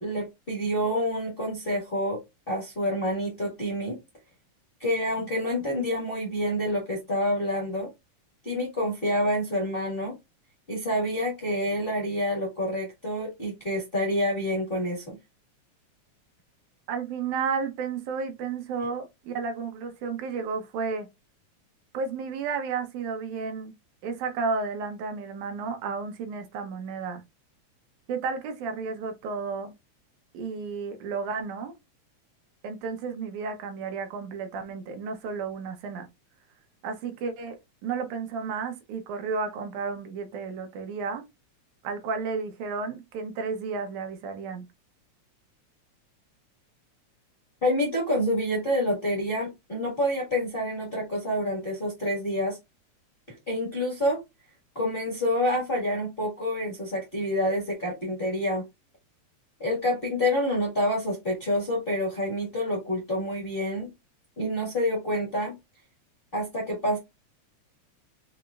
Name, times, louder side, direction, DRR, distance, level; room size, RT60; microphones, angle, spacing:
voice 1, 0.0-2.2 2.5-4.0 4.8-7.9 8.4-10.1 10.7-15.2 47.6-52.6 53.5-54.2 54.7-58.6 59.6-63.9 64.4-65.5 66.3-67.0, left 1 dB, 30° left, 1.1 m, -27 dB
voice 2, 16.9-21.1 21.9-23.7 24.0-27.2 28.1-29.7 30.3-31.7 32.6-36.1 36.8-41.2 41.8-44.7, right 5 dB, 85° right, 2.3 m, -32 dB
5.5 x 3.0 x 2.4 m
omnidirectional pair, 3.4 m